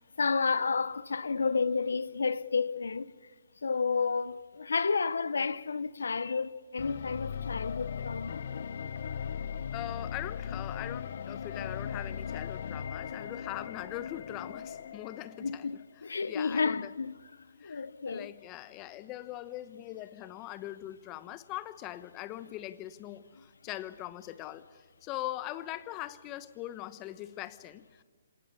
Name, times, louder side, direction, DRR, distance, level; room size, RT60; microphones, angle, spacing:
voice 1, 0.2-3.1 3.6-8.4 15.4-17.1 17.6-18.3, left 5 dB, 80° left, 0.8 m, -31 dB
sound 1, 6.8-15.8, left 7 dB, 60° left, 1.2 m, -38 dB
voice 2, 9.7-15.6 16.3-16.9 17.6-24.6 25.0-28.0, left 15 dB, 25° left, 1.0 m, -41 dB
27.0 x 18.5 x 9.6 m
hypercardioid pair, 150°, 0 cm